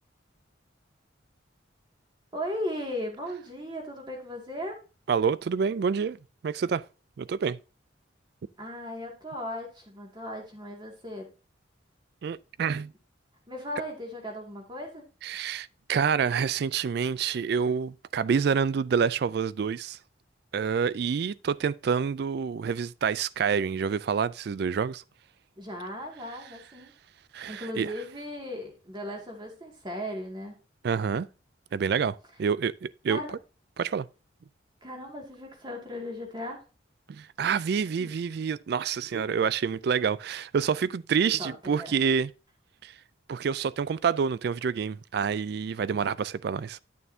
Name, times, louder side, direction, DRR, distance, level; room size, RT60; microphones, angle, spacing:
voice 1, 2.3-4.8 8.6-11.3 13.5-15.0 25.6-26.9 27.5-30.6 33.1-33.3 34.8-36.6 38.0-38.1 41.4-42.0, left 1 dB, 25° right, 2.2 m, -37 dB
voice 2, 5.1-6.2 6.4-6.8 7.2-7.6 12.2-12.9 15.2-20.0 20.5-25.0 27.3-27.9 30.8-31.3 31.7-33.2 33.8-34.1 37.1-42.3 42.8-42.9 43.3-46.8, right 6 dB, 55° right, 0.3 m, -27 dB
11.0 x 6.7 x 2.7 m
head